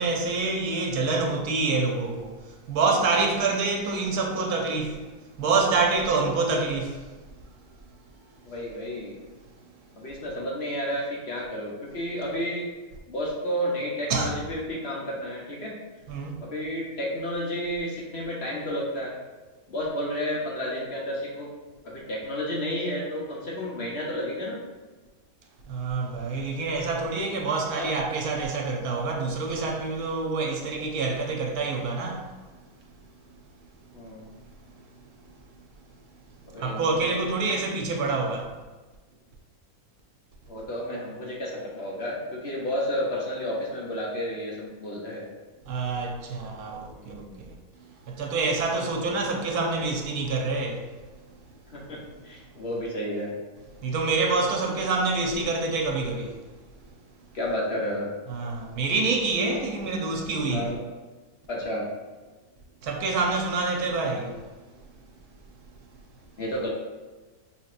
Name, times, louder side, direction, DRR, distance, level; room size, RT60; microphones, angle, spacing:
voice 1, 0.0-5.1 5.4-7.2 14.1-14.3 16.1-16.4 25.7-32.3 36.6-38.5 45.7-47.5 48.1-50.9 53.8-56.4 58.3-60.7 62.8-64.4, right 3 dB, 85° right, 1.1 m, -27 dB
voice 2, 8.4-9.2 10.0-12.7 13.1-15.7 16.4-19.1 19.7-21.5 21.8-24.6 27.8-27.9 33.9-34.3 36.5-37.4 40.5-45.2 46.9-47.4 51.7-53.3 57.3-58.1 60.5-60.8 61.5-61.9 66.4-66.7, equal, 55° left, 0.8 m, -31 dB
5.3 x 2.8 x 2.4 m
omnidirectional pair, 1.6 m